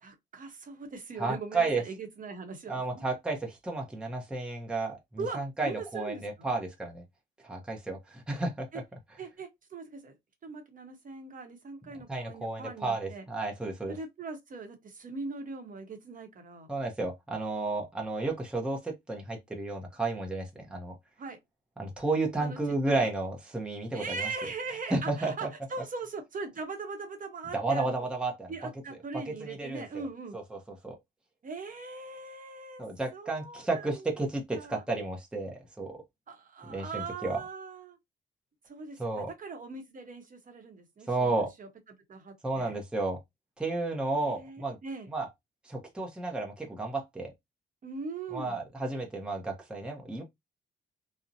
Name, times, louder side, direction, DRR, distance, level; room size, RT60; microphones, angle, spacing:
voice 1, 0.0-3.0 5.2-6.5 8.7-8.8 9.2-10.2 10.4-13.2 13.9-16.7 21.2-21.4 22.4-23.1 23.9-28.1 28.5-30.4 31.4-32.8 33.1-34.3 34.5-34.8 36.3-38.0 38.7-41.7 42.1-42.7 44.2-45.1 47.8-48.6, right 4 dB, 45° right, 0.8 m, -41 dB
voice 2, 1.2-1.8 2.7-7.0 7.4-8.7 12.1-13.9 16.7-20.9 21.8-24.5 24.9-25.5 27.5-28.5 29.1-30.0 30.3-30.6 30.8-31.0 32.8-36.0 36.7-37.4 39.0-39.3 41.1-41.5 42.4-43.2 43.6-44.8 45.1-45.3 45.6-47.3 48.3-50.2, right 2 dB, 5° right, 0.7 m, -32 dB
2.6 x 2.0 x 2.6 m
cardioid pair, 90°, 20 cm